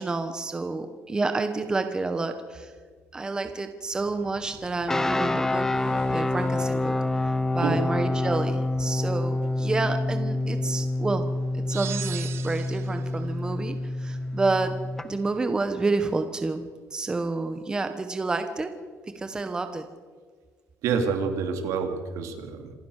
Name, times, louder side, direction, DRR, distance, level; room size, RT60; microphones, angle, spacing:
voice 1, 0.0-2.7 3.1-5.7 6.1-7.0 7.5-11.3 11.7-14.8 15.0-16.6 16.9-18.7 19.1-19.9, right 3 dB, 15° right, 8 dB, 1.2 m, -29 dB
sound 1, 4.0-15.8, left 3 dB, 75° left, 7.1 m, -51 dB
sound 2, 4.9-15.1, left 2 dB, 10° left, 0.8 m, -27 dB
sound 3, 11.7-13.1, right 12 dB, 50° right, 0.6 m, -37 dB
voice 2, 20.8-22.7, right 5 dB, 70° right, 6 dB, 3.1 m, -28 dB
27.0 x 15.5 x 6.6 m, 1.5 s
cardioid pair, 165°, 5 cm